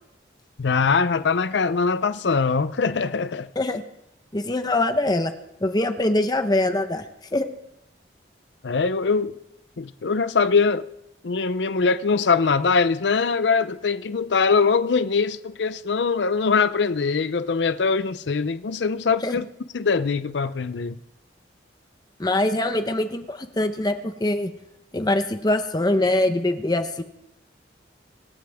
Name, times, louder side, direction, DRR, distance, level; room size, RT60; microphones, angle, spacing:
voice 1, 0.6-3.5 8.6-9.4 9.8-10.9 11.2-19.5 19.7-21.0, left 5 dB, 75° left, 0.6 m, -22 dB
voice 2, 4.3-5.3 5.6-7.0 7.3-7.5 19.2-19.3 22.2-24.5 24.9-27.0, left 1 dB, 25° left, 0.9 m, -23 dB
25.5 x 12.5 x 3.5 m
head